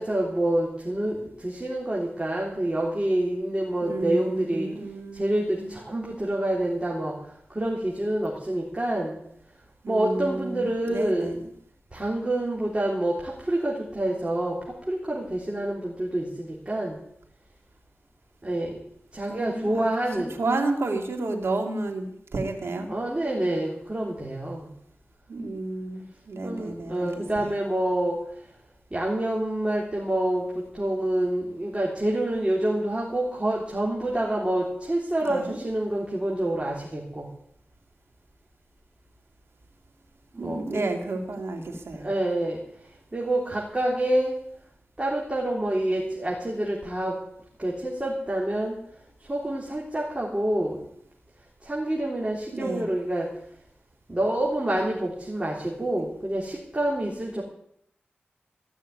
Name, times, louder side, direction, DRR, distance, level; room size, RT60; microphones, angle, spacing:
voice 1, 0.0-4.7 5.1-7.2 7.5-9.2 9.9-11.4 11.9-17.0 18.4-18.8 19.1-20.3 22.9-24.7 26.4-28.2 28.9-37.3 40.3-40.9 41.9-42.6 43.1-44.4 45.0-47.2 47.6-48.8 49.3-50.8 51.6-53.3 54.1-57.4, right 1 dB, 25° right, -3 dB, 3.5 m, -27 dB
voice 2, 3.8-5.7 9.8-11.4 19.3-19.9 20.2-22.9 25.3-27.5 35.2-35.6 40.4-42.1 52.5-52.9 55.8-55.9, right 2 dB, 80° right, 4 dB, 2.4 m, -31 dB
15.5 x 6.5 x 9.8 m, 0.72 s
cardioid pair, 50°, 4 cm